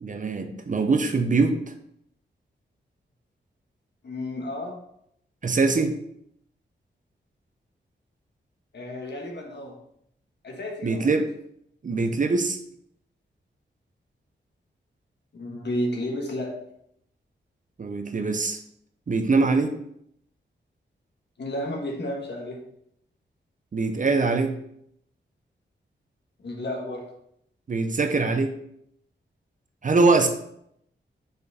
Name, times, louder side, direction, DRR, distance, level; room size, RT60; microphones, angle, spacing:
voice 1, 0.0-1.6 5.4-5.9 10.8-11.3 11.8-12.6 17.8-18.6 19.1-19.7 23.7-24.6 27.7-28.5 29.8-30.3, right 3 dB, 40° right, 6 dB, 0.6 m, -22 dB
voice 2, 4.0-4.8 8.7-9.8 10.4-11.2 15.3-16.6 21.4-22.6 26.4-27.1, left 1 dB, 60° left, 1 dB, 1.4 m, -32 dB
5.1 x 4.6 x 4.1 m, 0.72 s
wide cardioid pair, 105°, 20 cm